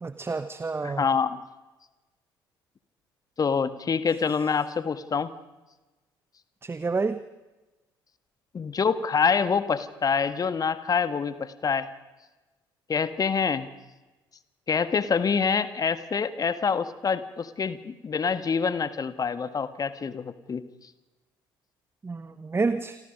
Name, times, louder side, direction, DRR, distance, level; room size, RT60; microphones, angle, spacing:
voice 1, 0.0-1.1 6.6-7.2 22.0-23.0, right 4 dB, 20° right, 13 dB, 1.0 m, -29 dB
voice 2, 0.8-1.4 3.4-5.3 8.5-11.9 12.9-13.7 14.7-20.6, left 6 dB, 30° left, 13 dB, 1.5 m, -26 dB
28.0 x 25.0 x 5.3 m, 1.1 s
figure-of-eight pair, 50°, 12 cm